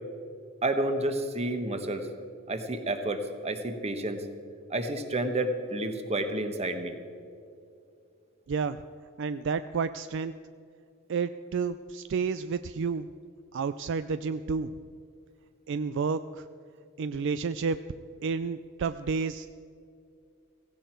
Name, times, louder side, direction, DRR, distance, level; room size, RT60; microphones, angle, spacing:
voice 1, 0.6-2.1 2.5-4.2 4.7-7.0, right 1 dB, 30° right, 7 dB, 1.2 m, -30 dB
voice 2, 8.5-8.8 9.2-10.3 11.1-13.1 13.5-14.7 15.7-16.5 17.0-17.8 18.2-19.5, right 5 dB, 60° right, 12 dB, 0.4 m, -30 dB
16.5 x 16.0 x 4.5 m, 2.5 s
head